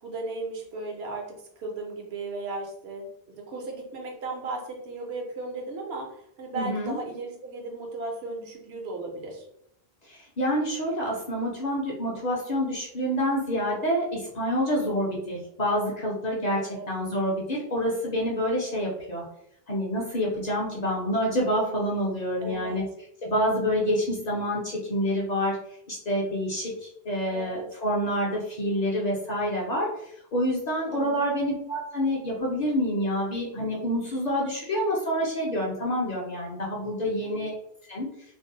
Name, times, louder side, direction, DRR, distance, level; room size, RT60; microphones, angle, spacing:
voice 1, 0.0-9.5 16.6-16.9 22.4-22.8 27.3-27.6 30.9-31.3 37.1-37.5, right 2 dB, 75° right, 1 dB, 0.9 m, -36 dB
voice 2, 6.5-7.0 10.1-19.2 19.7-22.8 23.2-25.6 25.9-37.5 37.9-38.1, equal, 50° left, -3 dB, 0.5 m, -27 dB
2.5 x 2.0 x 2.6 m, 0.73 s
omnidirectional pair, 1.1 m